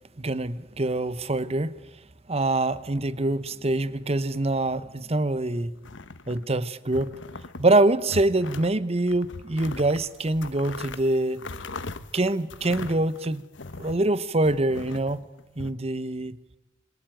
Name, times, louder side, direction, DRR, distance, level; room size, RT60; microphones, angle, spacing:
voice 1, 0.2-1.7 2.3-5.7 6.3-7.1 7.6-11.4 12.1-13.4 13.8-15.2 15.6-16.4, right 2 dB, 35° right, 16 dB, 1.0 m, -25 dB
sound 1, 5.8-6.5 6.9-7.7 8.0-8.7 9.1-14.1 14.4-15.7, left 3 dB, 85° left, 1.2 m, -39 dB
27.5 x 22.5 x 9.2 m, 1.1 s
head